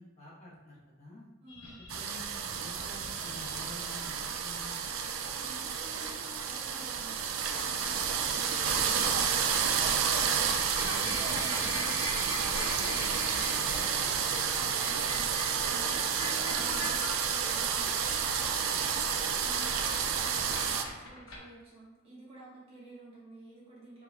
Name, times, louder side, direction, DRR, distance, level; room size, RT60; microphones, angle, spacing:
voice 1, 0.0-1.3 1.9-4.9 10.9-12.0, left 1 dB, 30° left, -7 dB, 1.1 m, -48 dB
voice 2, 1.4-1.8 5.2-9.9 12.5-24.0, right 1 dB, 30° right, -7 dB, 1.2 m, -52 dB
sound 1, 1.5-4.1 5.7-6.0 7.1-7.4 8.6-9.2 9.5-18.6 19.6-21.4, left 2 dB, 85° left, 0.9 m, -42 dB
sound 2, 1.9-20.8, right 7 dB, 75° right, 0.4 m, -30 dB
4.6 x 4.0 x 2.3 m, 1.1 s
head